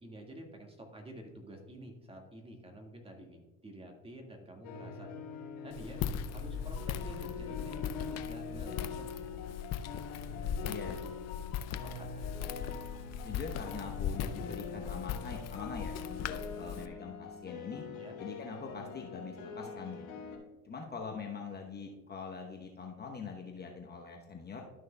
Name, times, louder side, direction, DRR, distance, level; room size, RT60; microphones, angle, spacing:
voice 1, 0.0-5.1 5.6-6.0 6.3-9.0 9.3-9.6 10.6-10.7 11.0-11.1 11.7-12.4 17.9-18.2, right 1 dB, 15° right, 2 dB, 1.9 m, -50 dB
sound 1, 4.6-20.4, left 5 dB, 60° left, 2.3 m, -44 dB
Walk footsteps, 5.7-16.9, left 8 dB, 45° left, 0.6 m, -39 dB
voice 2, 10.6-11.0 13.2-17.8 18.2-20.2 20.6-24.6, left 5 dB, 25° left, 1 dB, 1.0 m, -43 dB
12.5 x 6.3 x 2.3 m, 1.2 s
hypercardioid pair, 80°, 37 cm